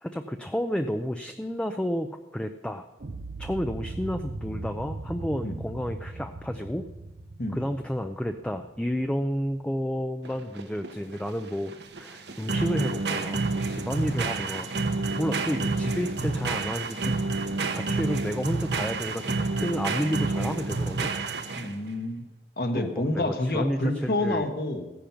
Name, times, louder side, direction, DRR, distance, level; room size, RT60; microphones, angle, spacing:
voice 1, 0.0-2.9 3.4-6.9 7.5-14.7 15.2-17.1 17.7-21.1 22.8-24.5, equal, 5° left, 6 dB, 0.5 m, -31 dB
sound 1, 3.0-9.1, right 2 dB, 60° right, 0.7 m, -39 dB
sound 2, 10.2-21.9, right 3 dB, 80° right, 1.1 m, -29 dB
voice 2, 21.5-22.2 22.6-24.9, left 1 dB, 55° left, 6 dB, 1.4 m, -28 dB
15.5 x 10.0 x 5.8 m, 1.1 s
head